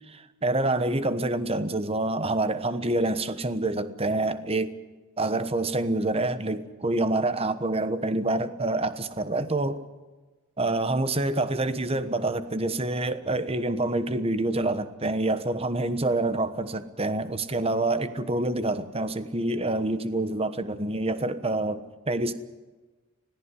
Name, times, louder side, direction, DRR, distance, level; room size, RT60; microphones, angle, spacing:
voice 1, 0.1-4.7 5.2-9.8 10.6-21.8 22.1-22.3, right 2 dB, 25° right, 12 dB, 1.1 m, -27 dB
21.0 x 15.0 x 9.8 m, 1.3 s
head